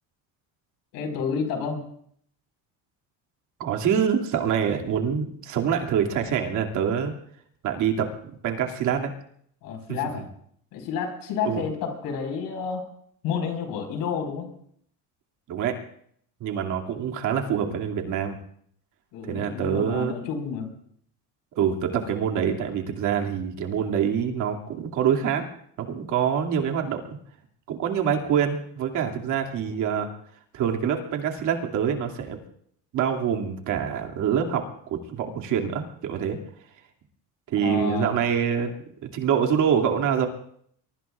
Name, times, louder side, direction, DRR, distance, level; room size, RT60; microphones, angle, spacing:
voice 1, 0.9-1.8 9.6-10.3 10.7-12.9 13.2-14.5 19.1-20.7 29.5-29.7 37.6-38.1, left 6 dB, 80° left, 5 dB, 5.0 m, -30 dB
voice 2, 3.6-7.1 7.6-9.1 9.9-10.2 11.4-11.6 15.5-15.8 16.4-18.4 19.2-20.1 21.6-25.5 25.8-27.2 27.7-30.1 30.5-32.4 32.9-36.4 37.5-38.7 39.0-40.3, right 8 dB, 60° right, 2 dB, 2.5 m, -25 dB
23.5 x 23.0 x 2.5 m, 0.65 s
cardioid pair, 150°, 35 cm